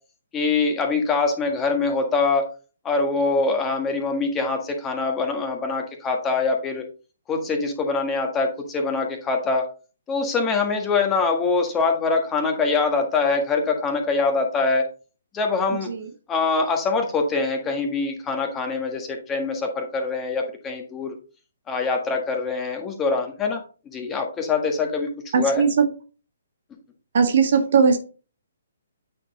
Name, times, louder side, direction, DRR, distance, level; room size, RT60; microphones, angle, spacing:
voice 1, 0.3-2.5 2.8-6.8 7.3-9.7 10.1-14.9 15.3-15.9 16.3-21.1 21.7-23.6 23.9-25.6, left 4 dB, 15° left, 1.6 m, -24 dB
voice 2, 25.3-25.8 27.1-28.0, right 6 dB, 60° right, 1.8 m, -18 dB
8.9 x 4.4 x 3.9 m
figure-of-eight pair, 135°, 0 cm